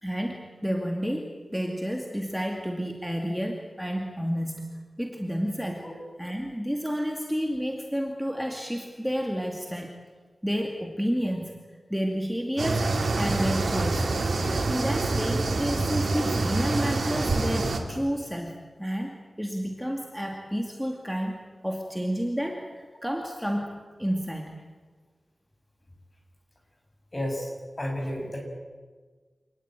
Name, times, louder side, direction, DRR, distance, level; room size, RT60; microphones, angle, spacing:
voice 1, 0.0-4.7 5.0-5.9 6.2-9.9 10.4-11.5 11.9-14.1 14.4-24.6, equal, ahead, 2 dB, 2.3 m, -30 dB
sound 1, 12.6-17.8, right 3 dB, 75° right, 3.5 m, -26 dB
voice 2, 27.1-27.5 27.8-28.4, left 1 dB, 30° left, 2 dB, 6.9 m, -31 dB
27.0 x 19.5 x 9.1 m, 1.5 s
wide cardioid pair, 105°, 0 cm